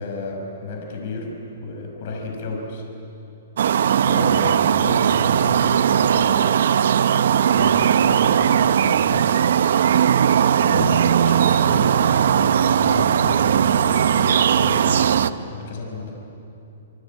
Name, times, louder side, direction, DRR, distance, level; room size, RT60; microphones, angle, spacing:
voice 1, 0.0-2.8 4.0-6.6 7.1-9.7 10.5-15.1 15.5-16.1, left 2 dB, 45° left, 1 dB, 5.6 m, -32 dB
sound 1, 3.6-15.3, right 8 dB, 65° right, 0.8 m, -18 dB
26.5 x 24.5 x 8.7 m, 2.9 s
hypercardioid pair, 165°, 0 cm